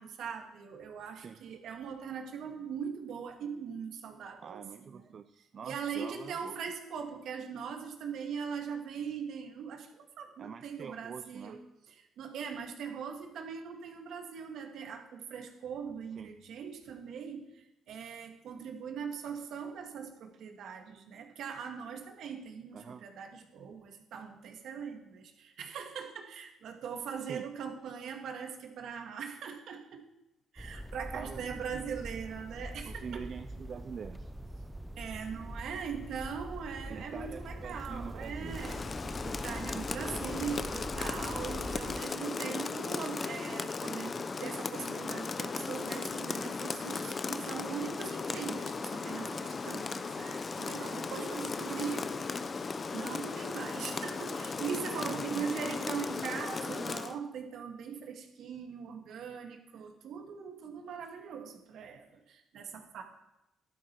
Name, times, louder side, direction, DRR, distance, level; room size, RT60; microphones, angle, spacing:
voice 1, 0.0-5.1 5.6-11.6 12.0-30.0 30.5-33.2 35.0-38.8 39.2-52.1 52.9-63.0, right 7 dB, 75° right, 3 dB, 2.2 m, -41 dB
voice 2, 4.4-6.6 10.4-11.6 16.2-16.3 22.7-23.0 27.2-27.5 31.1-31.9 32.9-34.3 36.9-38.6 55.0-55.8, right 6 dB, 50° right, 9 dB, 0.6 m, -45 dB
sound 1, 30.6-42.0, right 1 dB, 5° right, 0.7 m, -43 dB
Rain, 38.5-57.2, left 4 dB, 35° left, 0.8 m, -36 dB
13.0 x 12.5 x 4.8 m, 0.91 s
cardioid pair, 90°, 0 cm